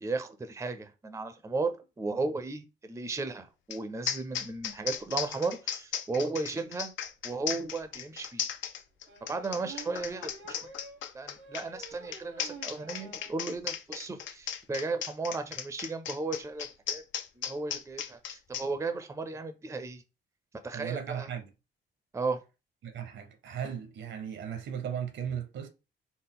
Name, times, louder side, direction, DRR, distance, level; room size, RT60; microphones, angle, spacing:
voice 1, 0.0-6.9 7.2-8.5 9.3-10.7 11.1-17.0 17.4-20.0 20.6-21.3 22.1-22.4, right 3 dB, 15° right, 0.5 m, -35 dB
sound 1, 3.7-3.8 4.1-18.7, left 9 dB, 70° left, 0.5 m, -36 dB
sound 2, 9.1-13.4 13.7-13.8 14.1-14.2 14.4-14.6, right 3 dB, 90° right, 1.1 m, -49 dB
voice 2, 20.7-21.5 22.8-25.7, right 8 dB, 70° right, 0.7 m, -36 dB
4.1 x 2.0 x 3.6 m
cardioid pair, 90°, 20 cm